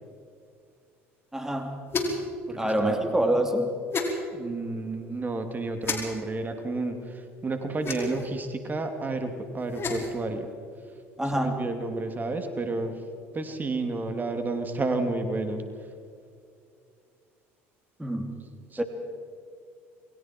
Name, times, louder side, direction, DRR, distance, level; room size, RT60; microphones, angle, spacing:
voice 1, 1.3-1.8 2.6-3.8 11.2-11.6 18.0-18.4 18.8-18.9, right 1 dB, 5° right, 5 dB, 2.6 m, -26 dB
sound 1, 1.9-2.3 3.9-4.1 5.8-6.0 7.8-8.3 9.6-10.1, left 3 dB, 35° left, 5.1 m, -30 dB
voice 2, 2.5-3.0 4.3-10.5 11.3-12.9 13.3-15.6 18.7-18.8, right 3 dB, 25° right, 6 dB, 2.7 m, -31 dB
28.5 x 22.0 x 4.6 m, 2.3 s
hypercardioid pair, 75°, 7 cm